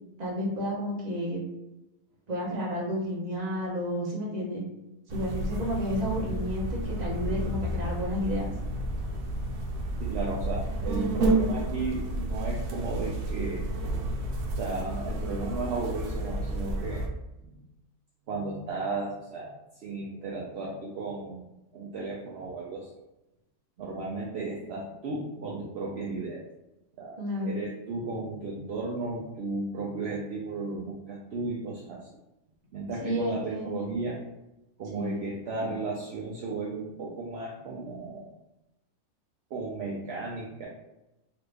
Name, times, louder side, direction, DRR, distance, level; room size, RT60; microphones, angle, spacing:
voice 1, 0.2-1.4 2.3-4.6 5.1-8.5 27.2-27.6 33.0-33.7 34.9-35.2, equal, 35° right, -4 dB, 0.8 m, -31 dB
sound 1, 5.1-17.1, right 1 dB, 85° right, 1.1 m, -31 dB
voice 2, 10.0-13.6 14.6-17.0 18.3-19.5 19.8-21.4 21.7-22.9 23.8-26.4 27.0-32.1 32.7-34.2 34.8-38.3 39.5-40.7, right 3 dB, 70° right, -3 dB, 0.6 m, -34 dB
2.9 x 2.4 x 3.3 m, 0.95 s
omnidirectional pair, 1.6 m